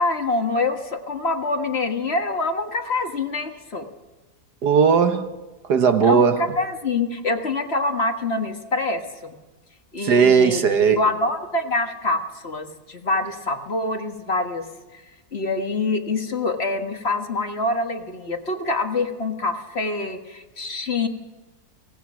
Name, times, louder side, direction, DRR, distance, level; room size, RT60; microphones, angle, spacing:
voice 1, 0.0-3.9 6.0-9.3 9.9-14.6 14.9-15.0 15.3-21.1, left 2 dB, 35° left, 1.6 m, -25 dB
voice 2, 4.6-5.3 5.7-6.4 10.0-11.0, right 6 dB, 65° right, 1.8 m, -17 dB
24.0 x 18.0 x 6.3 m
omnidirectional pair, 1.9 m